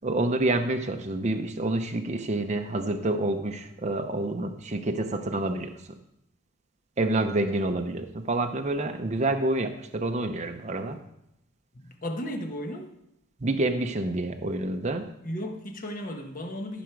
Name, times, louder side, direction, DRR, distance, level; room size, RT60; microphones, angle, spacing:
voice 1, 0.0-5.7 7.0-11.0 13.4-15.1, right 2 dB, 35° right, 5 dB, 0.7 m, -28 dB
voice 2, 11.8-12.9 15.2-16.8, equal, 40° left, 3 dB, 1.3 m, -35 dB
14.0 x 6.1 x 4.7 m, 0.81 s
head